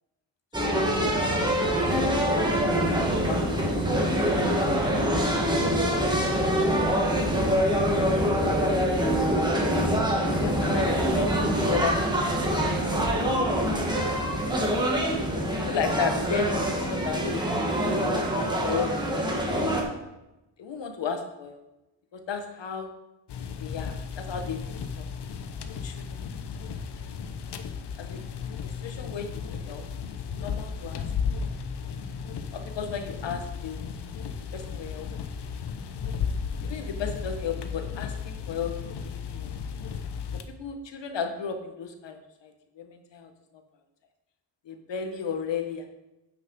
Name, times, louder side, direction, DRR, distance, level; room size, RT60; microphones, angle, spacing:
sound 1, 0.5-19.8, equal, 10° right, 1.3 m, -25 dB
voice 1, 0.7-1.3 1.8-3.0 3.3-4.7 5.7-5.9 6.2-6.3 6.6-7.1 9.0-9.2 9.5-12.2 12.5-13.5 15.6-17.4 18.1-18.9 19.4-19.7 20.6-21.6 22.1-22.9 23.6-25.1 25.8-26.3 28.0-28.2 28.5-29.8 30.3-31.0 32.5-33.9 34.5-35.1 36.6-38.7 39.0-39.6 40.6-43.3 44.6-45.8, left 6 dB, 85° left, 5 dB, 1.3 m, -35 dB
sound 2, 23.3-40.4, left 6 dB, 70° left, 0.8 m, -34 dB
8.5 x 6.5 x 5.3 m, 0.95 s
wide cardioid pair, 180°, 42 cm